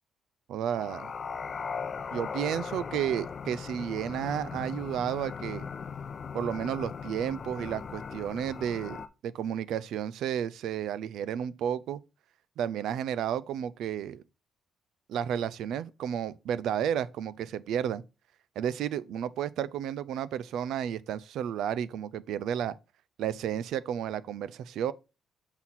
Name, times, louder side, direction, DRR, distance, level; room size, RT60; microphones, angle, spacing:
voice 1, 0.5-1.1 2.1-5.7 6.3-9.0 9.2-12.0 12.6-14.2 15.1-18.0 18.6-22.8 23.2-24.9, right 9 dB, 80° right, 0.4 m, -32 dB
sound 1, 0.7-9.1, left 6 dB, 45° left, 0.6 m, -38 dB
6.1 x 5.7 x 4.2 m
cardioid pair, 90°, 0 cm